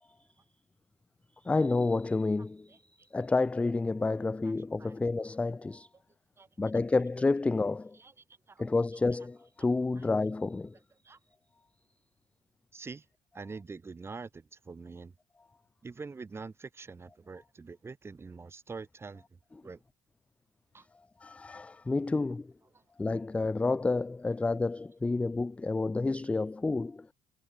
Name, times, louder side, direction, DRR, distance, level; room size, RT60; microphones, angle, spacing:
voice 1, 1.4-2.7 3.1-5.9 6.6-8.0 8.6-10.7 21.2-22.5 23.0-27.1, left 3 dB, 10° left, 0.4 m, -29 dB
voice 2, 7.9-8.7 10.0-10.1 11.0-11.2 12.7-13.1 13.3-15.1 15.8-19.2 19.6-19.8 20.7-20.9 22.7-22.8, right 4 dB, 20° right, 5.9 m, -45 dB
cardioid pair, 160°, 13 cm